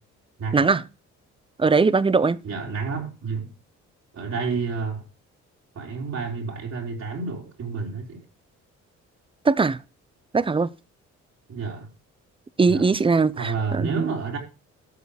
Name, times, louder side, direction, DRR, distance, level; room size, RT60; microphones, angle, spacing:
voice 1, 1.6-2.4 9.5-9.8 10.3-10.7 12.6-14.1, right 4 dB, 15° right, 0.6 m, -20 dB
voice 2, 2.4-3.5 4.1-5.0 5.7-8.2 11.5-11.9 12.6-12.9 13.3-14.4, right 4 dB, 60° right, 4.2 m, -30 dB
13.0 x 7.1 x 5.1 m
cardioid pair, 90°, 30 cm